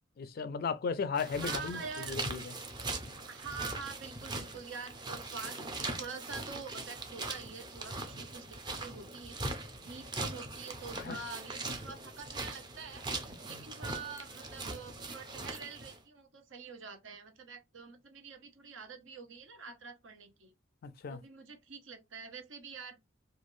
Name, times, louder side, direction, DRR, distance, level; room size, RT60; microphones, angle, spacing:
voice 1, 0.2-1.8 2.1-2.4 11.0-11.2 13.5-13.6 20.8-21.2, left 5 dB, 50° left, 0.3 m, -35 dB
sound 1, 1.2-16.0, right 2 dB, 20° right, 0.5 m, -41 dB
voice 2, 1.4-2.2 3.3-9.4 9.9-20.5 21.1-23.0, right 5 dB, 75° right, 0.8 m, -46 dB
3.1 x 2.5 x 2.6 m
head